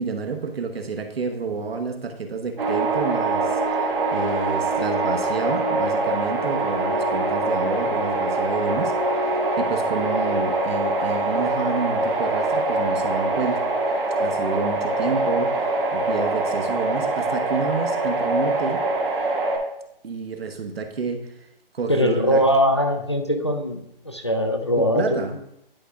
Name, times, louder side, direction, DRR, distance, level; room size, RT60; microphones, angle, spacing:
voice 1, 0.0-8.9 9.6-13.6 14.2-18.9 20.0-21.3 21.7-22.4 24.8-25.3, right 4 dB, 85° right, 5 dB, 1.1 m, -29 dB
sound 1, 2.6-19.6, right 2 dB, 65° right, 1.8 m, -24 dB
voice 2, 21.9-25.4, equal, 30° left, 3 dB, 0.4 m, -21 dB
11.0 x 5.1 x 2.3 m, 0.81 s
hypercardioid pair, 175°, 29 cm